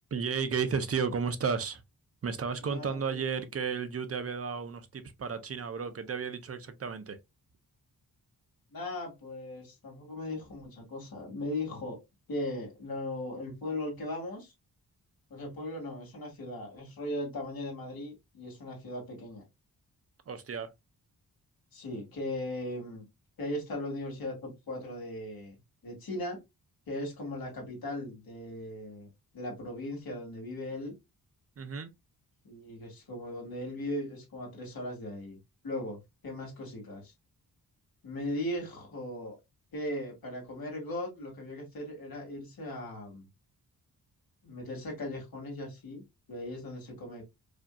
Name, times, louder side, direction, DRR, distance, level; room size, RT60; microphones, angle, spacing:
voice 1, 0.1-1.8 2.2-7.2 20.3-20.7 31.6-31.9, right 6 dB, 40° right, 0.6 m, -33 dB
voice 2, 2.6-3.2 8.7-12.0 12.3-14.5 15.3-19.4 21.7-23.0 23.4-25.5 25.8-26.4 26.9-30.9 32.4-35.4 35.6-37.1 38.0-39.4 39.7-43.3 44.4-46.0 46.3-47.2, left 1 dB, 65° left, 2.2 m, -38 dB
4.9 x 2.7 x 2.3 m
wide cardioid pair, 165°, 38 cm